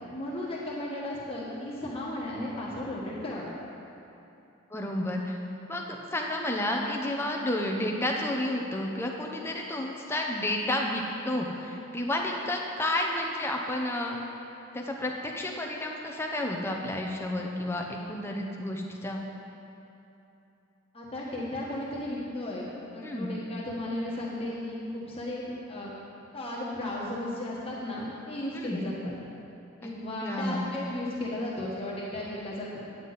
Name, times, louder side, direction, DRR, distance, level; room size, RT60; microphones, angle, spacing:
voice 1, 0.1-3.4 20.9-22.7 22.9-25.9 26.3-29.1 29.8-32.8, left 1 dB, 25° left, -6 dB, 1.4 m, -35 dB
voice 2, 4.7-5.4 5.7-14.3 14.7-19.2 23.0-23.3 28.5-28.9 30.2-30.6, left 1 dB, 10° left, 0 dB, 0.7 m, -31 dB
9.5 x 9.1 x 4.1 m, 2.9 s
head